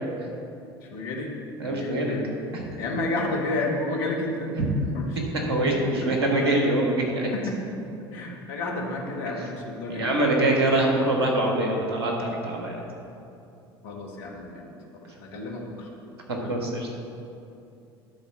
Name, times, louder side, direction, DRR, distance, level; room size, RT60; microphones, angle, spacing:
voice 1, 0.9-1.3 1.6-2.2 2.8-4.5 4.9-5.1 6.4-6.5 7.3-7.6 8.1-10.3 13.8-15.9 16.4-16.6, left 2 dB, 65° left, 0 dB, 1.5 m, -31 dB
voice 2, 1.6-2.1 2.5-2.6 5.5-7.3 9.3-9.4 9.9-12.8 16.3-16.9, right 1 dB, 80° right, 0 dB, 1.5 m, -24 dB
11.5 x 4.3 x 6.1 m, 2.6 s
hypercardioid pair, 65°, 13 cm